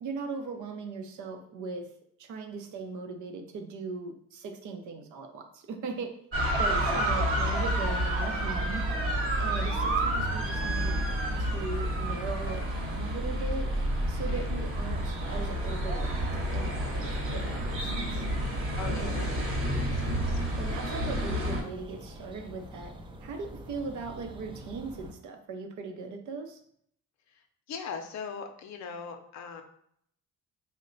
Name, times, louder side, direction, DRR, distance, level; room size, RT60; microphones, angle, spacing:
voice 1, 0.0-1.9 2.2-6.1 6.6-8.8 9.4-11.0 11.3-13.7 14.1-16.2 16.5-17.0 17.3-18.2 18.8-19.2 20.6-22.9 23.2-26.6, right 4 dB, 75° right, 5 dB, 0.6 m, -39 dB
sound 1, 6.3-21.6, right 1 dB, 45° right, 1.0 m, -29 dB
voice 2, 6.9-7.2 14.3-14.5 18.8-20.4 27.3-29.6, left 6 dB, 65° left, 6 dB, 0.6 m, -40 dB
sound 2, 7.6-25.1, right 1 dB, 15° right, 0.4 m, -46 dB
3.1 x 2.1 x 3.8 m, 0.68 s
cardioid pair, 90°, 30 cm